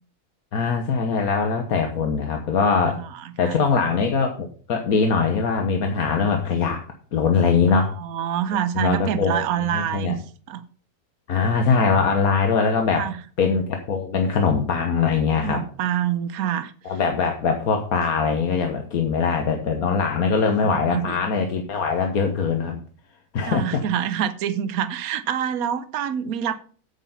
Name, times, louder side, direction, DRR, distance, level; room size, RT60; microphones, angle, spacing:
voice 1, 0.5-3.0 3.4-6.8 7.1-8.0 8.7-10.2 11.3-13.1 13.4-15.6 16.9-22.8 23.3-23.8, left 5 dB, 70° left, 1.6 m, -22 dB
voice 2, 2.9-3.6 7.7-10.2 10.5-10.6 12.9-13.2 15.4-16.7 20.6-21.2 23.5-26.6, right 10 dB, 70° right, 1.2 m, -26 dB
9.1 x 7.8 x 5.7 m
omnidirectional pair, 1.6 m